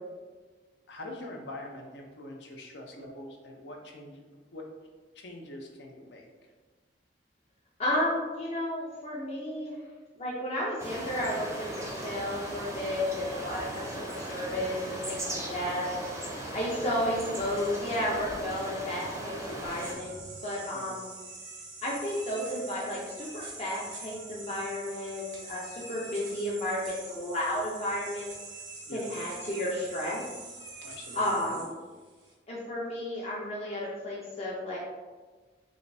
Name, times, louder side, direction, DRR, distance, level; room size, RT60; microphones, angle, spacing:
voice 1, 0.9-4.2 4.5-4.6 5.1-6.3 13.9-14.1 20.7-21.0 28.9-29.1 30.8-31.5, left 1 dB, 75° left, 1 dB, 0.7 m, -44 dB
voice 2, 7.8-9.8 10.2-16.2 16.5-20.1 20.4-21.1 21.8-28.3 28.9-30.3 31.1-31.7 32.5-34.8, left 1 dB, 35° left, -5 dB, 0.6 m, -32 dB
sound 1, 10.8-19.9, right 1 dB, 15° right, 0.6 m, -38 dB
sound 2, 19.5-32.3, right 3 dB, 90° right, 1.0 m, -45 dB
4.9 x 2.6 x 2.6 m, 1.3 s
head